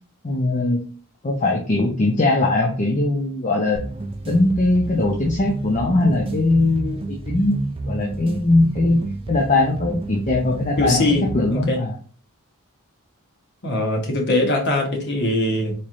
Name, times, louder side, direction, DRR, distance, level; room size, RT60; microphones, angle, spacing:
voice 1, 0.2-0.9 1.2-3.8 4.3-11.0 11.3-11.9, left 2 dB, 35° left, -1 dB, 0.5 m, -20 dB
sound 1, 3.8-11.8, right 2 dB, 25° right, 0.4 m, -30 dB
voice 2, 10.8-11.8 13.6-15.7, left 2 dB, 50° left, 1 dB, 1.1 m, -22 dB
4.2 x 3.2 x 2.5 m, 0.42 s
head